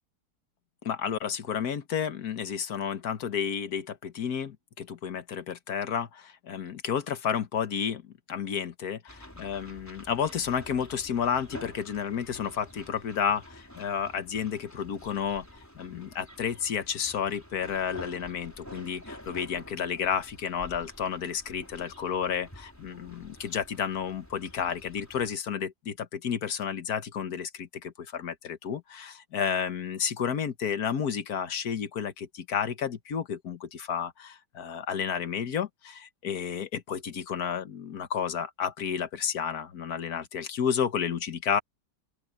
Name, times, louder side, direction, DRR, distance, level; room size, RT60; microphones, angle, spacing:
voice 1, 0.8-15.4 15.7-41.6, left 7 dB, 65° left, 1.7 m, -31 dB
sound 1, 9.1-25.4, equal, 10° left, 4.2 m, -49 dB
open air
omnidirectional pair, 1.8 m